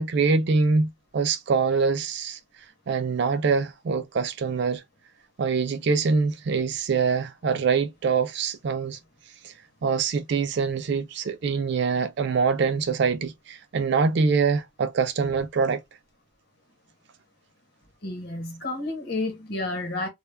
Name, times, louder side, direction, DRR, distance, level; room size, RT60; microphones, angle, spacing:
voice 1, 0.0-2.4 2.9-4.8 5.4-9.0 9.4-9.5 9.8-15.8, right 5 dB, 55° right, 0.3 m, -24 dB
voice 2, 18.0-20.1, left 2 dB, 50° left, 1.0 m, -30 dB
2.2 x 2.0 x 3.1 m
head